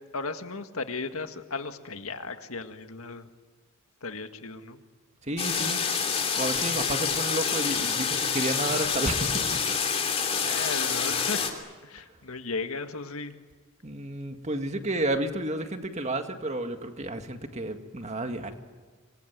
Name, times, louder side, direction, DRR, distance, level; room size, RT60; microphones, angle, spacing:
voice 1, 0.1-3.3 4.0-4.8 10.3-11.5 11.8-13.4, left 4 dB, 80° left, 7 dB, 1.8 m, -36 dB
voice 2, 5.2-5.8 6.4-9.6 10.1-10.6 13.8-18.5, right 1 dB, 30° right, 6 dB, 1.9 m, -31 dB
sound 1, 5.4-11.5, left 6 dB, 30° left, 3.1 m, -27 dB
26.5 x 22.0 x 9.4 m, 1.5 s
head